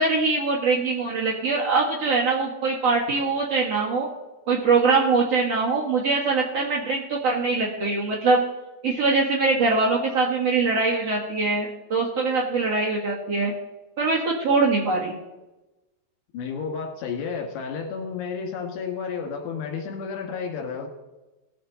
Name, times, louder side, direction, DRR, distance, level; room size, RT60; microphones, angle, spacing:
voice 1, 0.0-4.1 4.5-8.4 8.8-13.5 14.0-15.1, right 3 dB, 55° right, -4 dB, 1.9 m, -22 dB
voice 2, 16.3-20.9, left 6 dB, 80° left, 2 dB, 3.9 m, -31 dB
19.0 x 7.8 x 3.9 m, 1.1 s
omnidirectional pair, 4.9 m